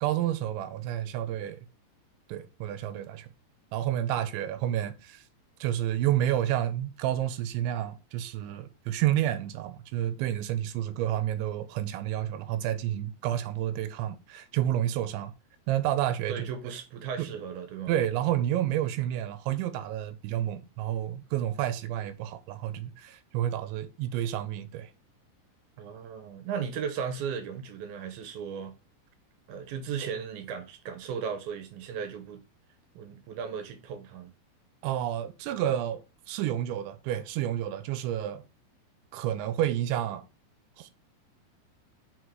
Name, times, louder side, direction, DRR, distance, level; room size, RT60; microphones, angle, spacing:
voice 1, 0.0-1.6 2.3-3.3 3.7-5.2 5.6-15.3 15.7-16.4 17.2-17.3 17.9-24.9 34.8-36.0 36.3-38.4 39.1-40.2 40.8-40.9, right 12 dB, 90° right, 3.1 m, -30 dB
voice 2, 16.3-17.9 25.8-28.7 29.5-32.4 33.0-34.3, right 7 dB, 70° right, 2.5 m, -36 dB
6.4 x 5.6 x 4.6 m
omnidirectional pair, 5.2 m